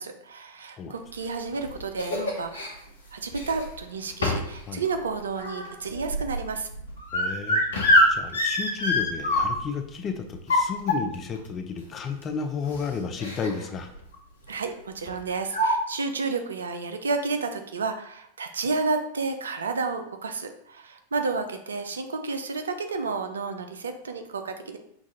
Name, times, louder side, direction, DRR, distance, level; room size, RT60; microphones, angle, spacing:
voice 1, 0.0-2.9 3.1-6.7 14.5-24.8, right 4 dB, 70° right, 6 dB, 0.4 m, -31 dB
sound 1, 1.2-2.7 3.3-3.8 4.2-4.6 4.9-9.8 10.3-11.4 12.2-12.3 12.6-12.8 13.2-13.6 13.9-14.1 15.1-15.2 15.5-15.7, left 1 dB, 70° left, 0.7 m, -25 dB
voice 2, 7.1-13.9, left 5 dB, 25° left, 5 dB, 0.4 m, -32 dB
5.8 x 2.4 x 2.6 m, 0.70 s
figure-of-eight pair, 90°, 0 cm